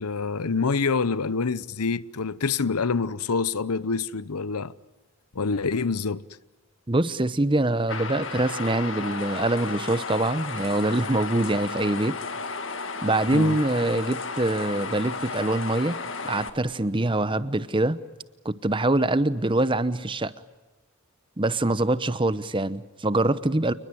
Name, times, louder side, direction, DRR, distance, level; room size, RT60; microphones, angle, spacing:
voice 1, 0.0-4.7 5.3-6.2 13.3-13.6, left 4 dB, 90° left, 0.9 m, -26 dB
voice 2, 6.9-12.2 13.0-16.0 16.2-18.0 18.4-20.3 21.4-23.7, right 2 dB, 20° right, 0.9 m, -24 dB
sound 1, 7.9-16.5, left 4 dB, 55° left, 2.0 m, -33 dB
29.0 x 20.5 x 9.2 m
head